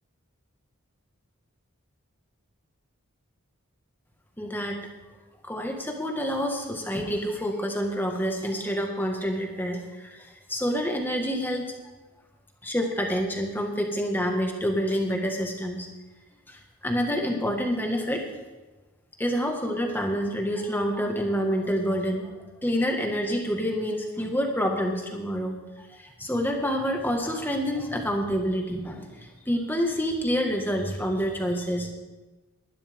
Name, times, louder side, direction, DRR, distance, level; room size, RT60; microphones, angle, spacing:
voice 1, 4.4-4.8 5.4-11.7 12.6-15.9 16.5-18.2 19.2-22.3 22.6-29.2 29.5-31.9, equal, 10° left, 2 dB, 1.6 m, -28 dB
20.5 x 11.5 x 3.6 m, 1.2 s
head